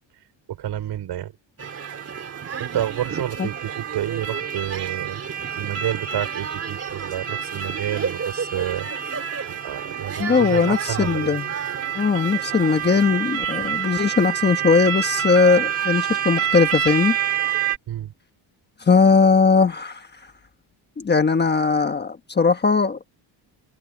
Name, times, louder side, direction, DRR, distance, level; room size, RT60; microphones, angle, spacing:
voice 1, 0.5-1.3 2.6-5.2 5.6-8.9 9.5-11.4 17.9-18.1, right 11 dB, 55° right, 5.7 m, -29 dB
sound 1, 1.6-17.8, right 9 dB, 30° right, 3.6 m, -28 dB
voice 2, 10.2-11.5 11.9-17.2 18.8-20.1 21.0-23.0, left 5 dB, 20° left, 1.2 m, -19 dB
cardioid pair, 160°, 47 cm